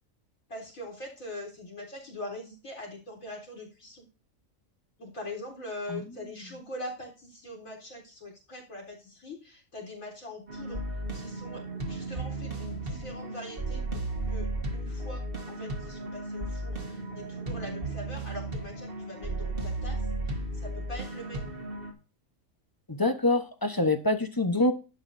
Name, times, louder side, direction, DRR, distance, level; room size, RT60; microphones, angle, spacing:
voice 1, 0.5-4.1 5.0-10.8 11.1-14.5 14.7-21.5, left 1 dB, 80° left, 4.4 m, -42 dB
sound 1, 10.5-21.9, right 2 dB, 45° right, 2.0 m, -35 dB
voice 2, 22.9-24.7, left 2 dB, 15° left, 1.0 m, -25 dB
12.0 x 9.4 x 2.7 m
omnidirectional pair, 1.4 m